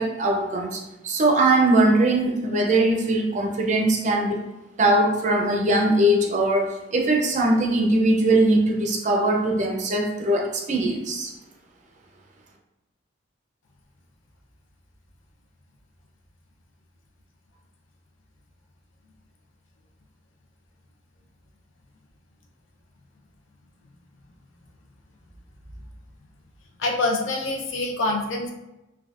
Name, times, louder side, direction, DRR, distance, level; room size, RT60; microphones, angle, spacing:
voice 1, 0.0-4.4 4.8-11.3, right 1 dB, 40° right, 0 dB, 0.5 m, -21 dB
voice 2, 26.8-28.5, left 2 dB, 90° left, 1 dB, 0.5 m, -25 dB
3.4 x 2.3 x 2.4 m, 0.94 s
head